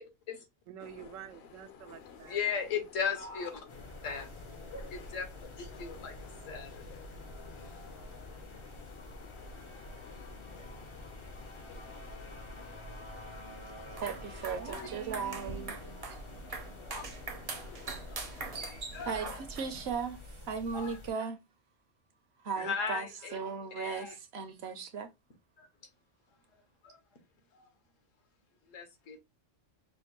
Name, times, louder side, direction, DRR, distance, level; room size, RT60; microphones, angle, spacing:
voice 1, 0.7-2.6 14.5-15.8, right 10 dB, 85° right, 1.0 m, -48 dB
sound 1, 0.8-18.7, left 7 dB, 60° left, 0.8 m, -54 dB
voice 2, 2.2-3.6 4.0-4.3 4.9-7.0 9.7-10.0 10.6-10.9 11.2-11.8 12.3-14.0 14.6-14.9 16.5-17.0 18.1-19.4 20.7-21.0 22.6-23.3 23.8-24.1 25.6-25.7 26.8-27.0 27.5-27.6 28.7-29.2, left 6 dB, 75° left, 1.3 m, -39 dB
sound 2, 3.7-21.1, left 1 dB, 35° left, 0.5 m, -48 dB
sound 3, 13.9-19.9, right 4 dB, 40° right, 0.5 m, -43 dB
voice 3, 14.0-15.8 18.3-18.4 18.7-21.4 22.4-25.1, right 6 dB, 60° right, 0.8 m, -37 dB
5.0 x 2.2 x 2.9 m
omnidirectional pair, 1.3 m